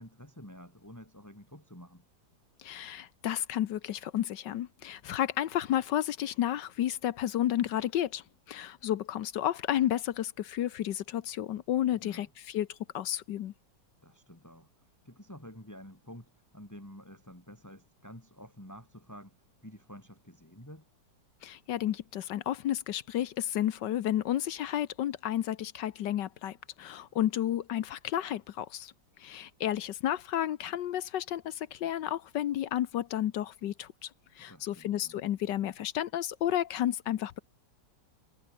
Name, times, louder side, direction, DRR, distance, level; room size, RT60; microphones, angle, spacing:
voice 1, 0.0-2.0 11.9-12.3 14.0-19.4 19.6-20.9 34.4-35.2, equal, 10° left, 4.7 m, -50 dB
voice 2, 2.6-13.5 21.4-28.9 29.2-34.1 34.3-37.4, left 12 dB, 75° left, 1.4 m, -32 dB
omnidirectional pair, 2.0 m